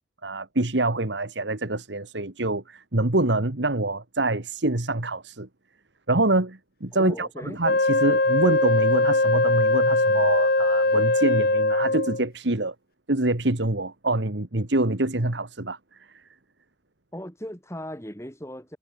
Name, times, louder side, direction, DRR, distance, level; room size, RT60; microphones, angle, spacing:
voice 1, 0.2-5.5 6.1-12.7 13.1-15.8, right 2 dB, 75° right, 1.9 m, -25 dB
voice 2, 6.9-7.6 17.1-18.8, equal, 15° left, 7.2 m, -37 dB
Wind instrument woodwind instrument, 7.6-12.3, left 2 dB, 55° left, 1.8 m, -21 dB
head